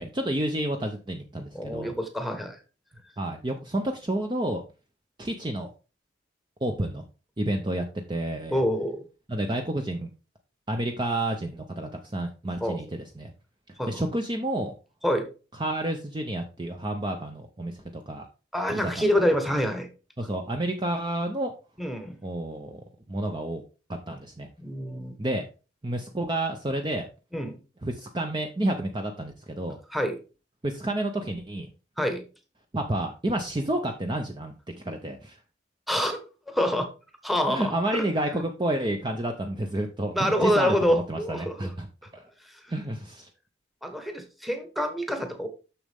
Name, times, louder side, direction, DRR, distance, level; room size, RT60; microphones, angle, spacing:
voice 1, 0.0-1.9 3.2-4.6 5.2-5.7 6.6-7.0 7.4-8.6 9.3-10.1 10.7-13.3 13.9-14.7 15.6-17.8 18.1-18.3 18.7-18.9 20.2-21.5 22.2-22.8 23.1-23.6 24.1-24.5 25.2-25.4 25.8-27.1 27.8-29.8 30.6-31.7 32.7-34.5 34.8-35.4 37.5-41.9 42.1-42.3 42.7-43.3, right 1 dB, 25° right, 4 dB, 0.6 m, -30 dB
voice 2, 1.5-2.6 8.5-9.0 12.6-12.8 13.8-14.0 15.0-15.3 18.5-19.9 21.8-22.2 24.6-25.1 27.3-27.6 29.9-30.2 32.0-32.2 35.9-36.2 36.5-36.9 37.2-38.0 40.1-41.7 43.8-45.5, equal, ahead, 6 dB, 1.1 m, -26 dB
7.0 x 6.3 x 3.5 m, 0.32 s
head